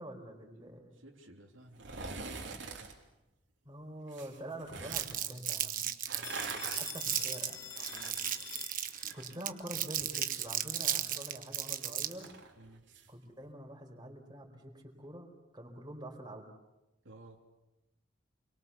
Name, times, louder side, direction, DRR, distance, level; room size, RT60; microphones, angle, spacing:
voice 1, 0.0-1.0 3.6-5.9 6.8-7.6 9.1-12.3 13.1-16.5, right 1 dB, 25° right, 1 dB, 4.5 m, -46 dB
voice 2, 0.5-3.0 6.1-6.8 7.9-8.3 9.0-9.2 12.6-12.8 17.0-17.4, right 2 dB, 85° right, 1 dB, 3.2 m, -56 dB
sound 1, 1.7-2.9 4.1-5.1 5.9-9.4 9.7-13.1 13.4-13.5, right 4 dB, 70° right, 3.3 m, -45 dB
Crumpling crinkling, 4.9-12.3, right 11 dB, 45° right, 1.3 m, -35 dB
Telephone, 6.2-9.2, left 7 dB, 15° left, 1.2 m, -46 dB
29.0 x 23.0 x 7.0 m, 0.98 s
head